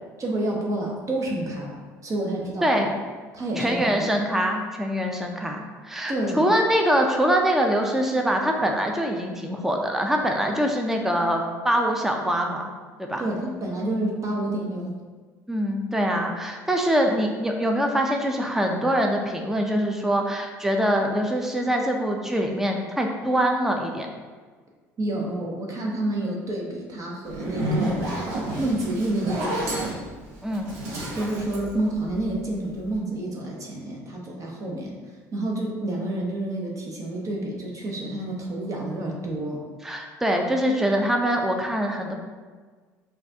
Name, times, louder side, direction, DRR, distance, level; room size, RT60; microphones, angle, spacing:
voice 1, 0.2-2.9 3.3-4.1 6.1-6.5 13.2-14.9 25.0-28.2 28.6-29.9 31.1-35.0 35.3-39.6, right 1 dB, 45° right, -1 dB, 0.8 m, -29 dB
voice 2, 3.6-12.7 13.0-13.2 15.5-24.1 30.4-30.7 39.8-42.1, equal, 5° right, 2 dB, 0.5 m, -24 dB
Zipper (clothing), 27.2-32.5, right 1 dB, 90° right, 0.8 m, -29 dB
4.9 x 2.4 x 2.7 m, 1.4 s
hypercardioid pair, 70°, 8 cm